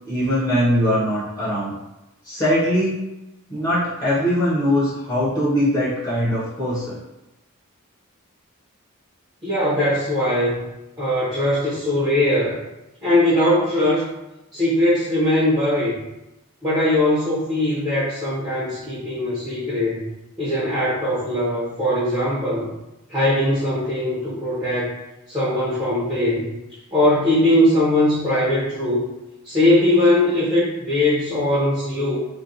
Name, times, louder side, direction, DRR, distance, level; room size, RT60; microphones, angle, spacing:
voice 1, 0.1-1.7 2.2-3.0 3.5-7.0, equal, 20° left, -10 dB, 0.7 m, -21 dB
voice 2, 9.4-10.6 11.0-12.6 13.0-14.1 14.5-16.0 16.6-20.1 20.4-22.7 23.1-25.0 25.3-26.5 26.9-29.0 29.4-32.2, left 1 dB, 20° right, -11 dB, 0.7 m, -20 dB
2.4 x 2.2 x 2.7 m, 0.96 s
head